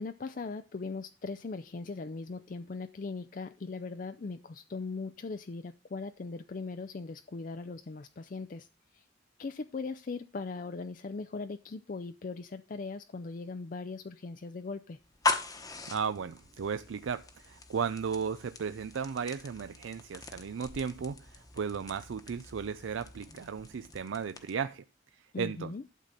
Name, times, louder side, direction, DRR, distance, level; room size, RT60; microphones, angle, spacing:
voice 1, 0.0-8.7 8.9-9.0 9.4-15.0 25.3-25.8, left 4 dB, 45° left, 9 dB, 0.4 m, -39 dB
sound 1, 15.0-24.7, left 3 dB, 20° left, 1.0 m, -40 dB
voice 2, 15.9-24.8 25.1-25.7, right 6 dB, 85° right, 12 dB, 0.4 m, -35 dB
12.0 x 4.0 x 7.5 m, 0.32 s
head